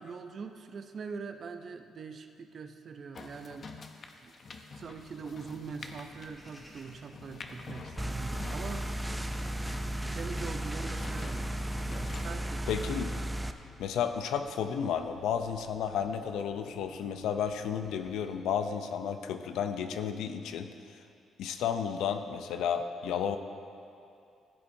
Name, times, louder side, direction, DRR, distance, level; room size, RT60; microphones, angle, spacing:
voice 1, 0.0-3.7 4.2-4.3 4.7-8.9 9.5-12.8, right 5 dB, 50° right, 7 dB, 0.6 m, -43 dB
sound 1, 3.1-12.3, left 4 dB, 45° left, 0.7 m, -47 dB
sound 2, 4.8-18.4, equal, 5° left, 2.3 m, -58 dB
sound 3, 8.0-13.5, right 1 dB, 10° right, 0.4 m, -34 dB
voice 2, 12.7-13.1 13.8-20.7 21.4-23.4, left 8 dB, 85° left, 8 dB, 0.5 m, -32 dB
15.5 x 8.4 x 2.7 m, 2.6 s
cardioid pair, 90°, 0 cm